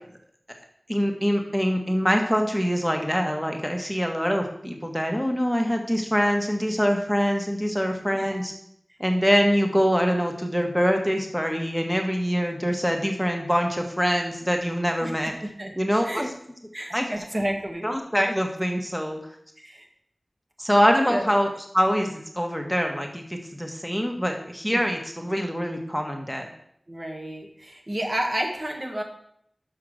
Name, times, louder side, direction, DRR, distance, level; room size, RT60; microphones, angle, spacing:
voice 1, 0.9-8.5 9.0-15.3 15.8-16.3 16.9-17.2 17.8-19.2 20.6-26.5, equal, ahead, 3 dB, 1.2 m, -24 dB
voice 2, 15.0-15.7 16.0-16.3 16.7-17.8 19.6-19.9 21.1-21.3 24.7-24.8 26.9-29.0, right 1 dB, 50° right, 1 dB, 1.6 m, -31 dB
6.4 x 5.7 x 6.3 m, 0.69 s
wide cardioid pair, 50°, 0 cm